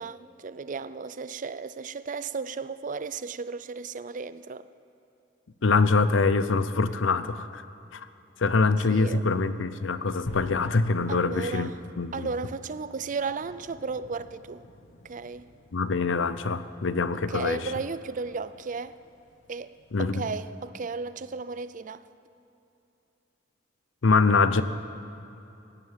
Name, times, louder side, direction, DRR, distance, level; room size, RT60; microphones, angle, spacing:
voice 1, 0.0-4.7 8.9-9.2 11.1-11.8 12.1-14.6 15.0-15.5 17.3-19.0 19.5-19.7 20.0-22.1, right 4 dB, 45° right, 0.5 m, -34 dB
voice 2, 5.6-7.6 7.9-8.1 8.4-11.7 12.0-12.3 15.7-17.6 19.9-20.2 24.0-24.6, left 4 dB, 90° left, 0.7 m, -24 dB
sound 1, 10.3-20.5, left 1 dB, 70° left, 1.3 m, -47 dB
16.5 x 11.0 x 7.3 m
head